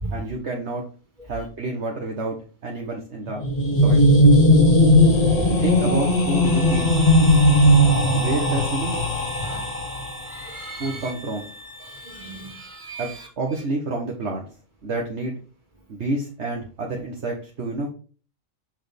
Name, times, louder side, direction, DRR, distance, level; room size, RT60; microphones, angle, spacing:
voice 1, 0.1-0.8 1.2-2.4 2.6-3.4 3.8-4.1 5.6-6.9 8.1-9.0 10.8-11.4 13.0-14.5 14.8-15.3 15.9-17.9, right 2 dB, 60° right, -1 dB, 1.5 m, -28 dB
sound 1, 3.3-10.3, left 1 dB, 30° left, 1.2 m, -17 dB
sound 2, 6.4-12.8, right 2 dB, 75° left, 2.9 m, -41 dB
voice 2, 9.4-9.8 10.3-11.1 11.8-13.3, right 3 dB, 40° right, 0 dB, 2.4 m, -36 dB
6.3 x 6.3 x 3.4 m, 0.38 s
omnidirectional pair, 1.3 m